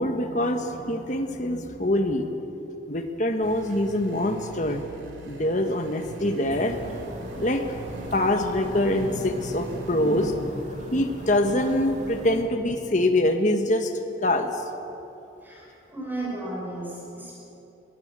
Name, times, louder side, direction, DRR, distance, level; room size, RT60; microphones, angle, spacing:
voice 1, 0.0-2.3 2.9-4.8 5.2-6.8 7.3-7.6 8.0-13.9 14.2-14.5, left 1 dB, 40° left, 6 dB, 1.6 m, -24 dB
sound 1, 3.4-10.3, right 1 dB, 80° right, 3.1 m, -43 dB
sound 2, 6.5-12.4, equal, 40° right, 3.2 m, -40 dB
voice 2, 15.4-17.3, right 2 dB, 10° right, -4 dB, 5.6 m, -34 dB
21.5 x 17.5 x 7.6 m, 3.0 s
head